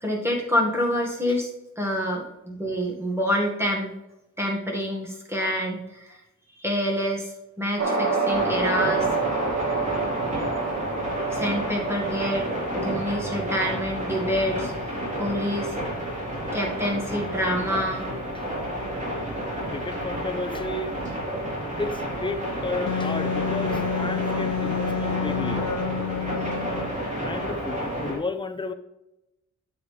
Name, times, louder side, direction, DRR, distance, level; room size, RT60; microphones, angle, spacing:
voice 1, 0.0-1.5 1.8-3.9 4.4-6.2 6.6-9.1 11.3-12.5 12.7-14.7 15.2-15.8 16.5-18.1, equal, 10° right, -1 dB, 1.8 m, -27 dB
sound 1, 7.8-16.3, right 3 dB, 60° right, 1.9 m, -29 dB
sound 2, 8.3-28.2, equal, 25° right, 3.4 m, -31 dB
voice 2, 19.7-20.9 21.8-25.6 26.2-26.3 27.2-28.7, left 3 dB, 15° left, 7 dB, 0.6 m, -32 dB
Wind instrument woodwind instrument, 22.9-26.9, left 6 dB, 85° left, 0.8 m, -29 dB
9.4 x 7.6 x 3.3 m, 0.93 s
wide cardioid pair, 155°, 30 cm